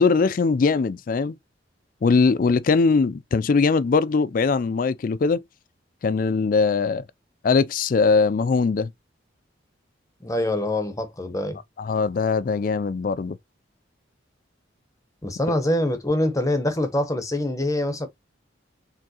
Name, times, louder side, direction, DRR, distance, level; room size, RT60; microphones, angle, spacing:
voice 1, 0.0-1.4 2.0-5.4 6.0-7.0 7.4-8.9 11.8-13.4, left 4 dB, 45° left, 0.3 m, -21 dB
voice 2, 10.2-11.6 15.2-18.1, left 1 dB, 15° left, 0.9 m, -24 dB
4.6 x 3.6 x 2.9 m
head